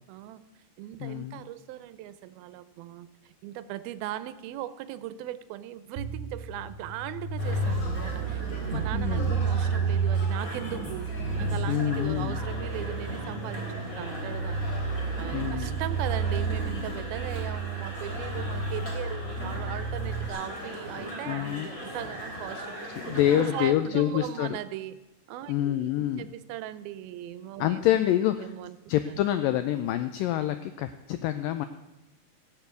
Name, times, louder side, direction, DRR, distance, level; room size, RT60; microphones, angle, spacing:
voice 1, 0.1-0.4 0.8-11.1 11.4-14.8 15.2-25.0 25.3-27.9 28.4-28.8 29.1-29.2, right 12 dB, 80° right, 14 dB, 2.3 m, -39 dB
voice 2, 1.0-1.4 8.7-9.4 11.7-12.4 15.3-15.8 21.3-21.7 23.0-24.6 25.5-26.3 27.6-28.5 28.9-31.7, left 12 dB, 85° left, 10 dB, 1.9 m, -27 dB
sound 1, 6.0-20.3, right 4 dB, 55° right, 2.5 m, -31 dB
sound 2, 7.4-23.7, equal, 20° left, 3.6 m, -38 dB
17.5 x 6.9 x 8.1 m, 0.97 s
omnidirectional pair, 4.6 m